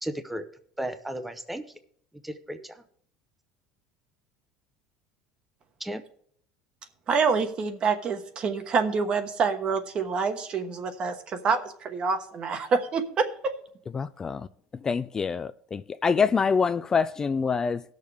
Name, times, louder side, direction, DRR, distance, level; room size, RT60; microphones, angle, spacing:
voice 1, 0.0-0.5 0.8-1.6 2.2-2.8 5.8-6.0, right 1 dB, 5° right, 0.7 m, -34 dB
voice 2, 7.1-13.5, right 5 dB, 40° right, 1.3 m, -27 dB
voice 3, 13.9-14.5 14.8-17.8, left 5 dB, 25° left, 0.3 m, -26 dB
17.0 x 6.6 x 3.4 m
supercardioid pair, 115°, 3 cm